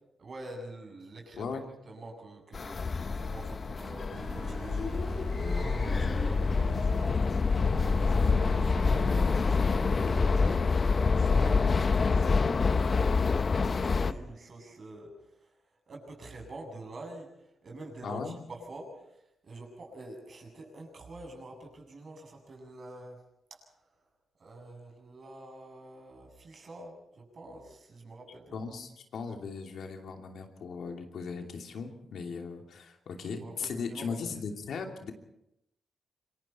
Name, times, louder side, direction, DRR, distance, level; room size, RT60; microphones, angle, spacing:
voice 1, 0.2-1.5 1.8-23.2 23.5-23.8 24.4-28.6 33.2-34.2, right 2 dB, 50° right, 2 dB, 7.8 m, -47 dB
sound 1, 2.5-14.1, left 4 dB, 45° left, 0.9 m, -27 dB
sound 2, 4.1-7.1 7.5-10.6 11.0-11.1, right 5 dB, 70° right, 3.6 m, -41 dB
voice 2, 18.0-18.4 28.5-35.1, left 5 dB, 75° left, 3 dB, 2.8 m, -38 dB
26.5 x 23.0 x 4.5 m, 0.83 s
cardioid pair, 90°, 0 cm